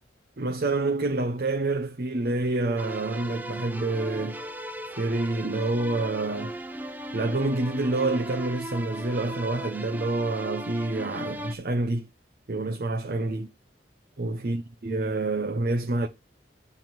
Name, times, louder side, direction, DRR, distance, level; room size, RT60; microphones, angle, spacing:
voice 1, 0.4-4.4 5.0-6.5 7.1-12.1 12.5-13.5 14.2-16.1, right 2 dB, 50° right, 0.7 m, -27 dB
sound 1, 2.8-11.5, right 1 dB, 10° right, 0.7 m, -37 dB
9.2 x 3.6 x 5.9 m
head